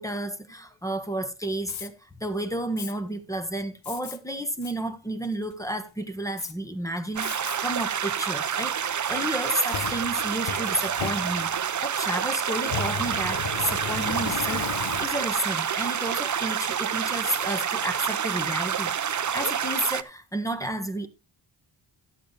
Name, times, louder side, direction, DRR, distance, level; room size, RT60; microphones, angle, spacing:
voice 1, 0.0-21.1, right 1 dB, 5° left, 1.4 m, -31 dB
Fire, 1.6-1.9 2.8-2.9 3.8-4.2 4.6-4.7 5.3-5.7 6.4-6.5 7.2-7.6 8.1-8.2 9.2-11.7 12.6-15.4, left 8 dB, 75° left, 1.0 m, -35 dB
sound 1, 7.2-20.0, right 8 dB, 40° right, 0.6 m, -28 dB
12.5 x 8.4 x 3.3 m
cardioid pair, 80°, 47 cm